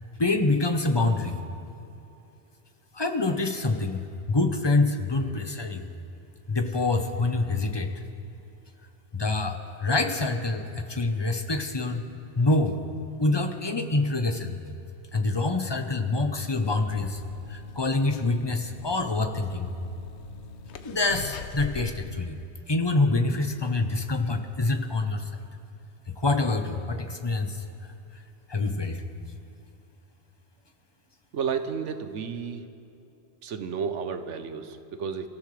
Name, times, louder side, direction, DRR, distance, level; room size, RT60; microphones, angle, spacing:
voice 1, 0.2-1.4 2.9-5.9 6.5-7.9 9.1-12.0 12.4-12.8 13.2-14.6 15.1-17.2 17.5-19.7 20.8-22.4 22.7-25.3 26.2-27.6 28.5-29.0, left 2 dB, 25° left, 6 dB, 0.9 m, -26 dB
sound 1, 16.9-22.0, left 5 dB, 75° left, 1.0 m, -41 dB
voice 2, 31.3-32.6 33.4-35.3, right 6 dB, 85° right, 9 dB, 1.2 m, -32 dB
28.0 x 14.5 x 3.3 m, 2.8 s
omnidirectional pair, 1.2 m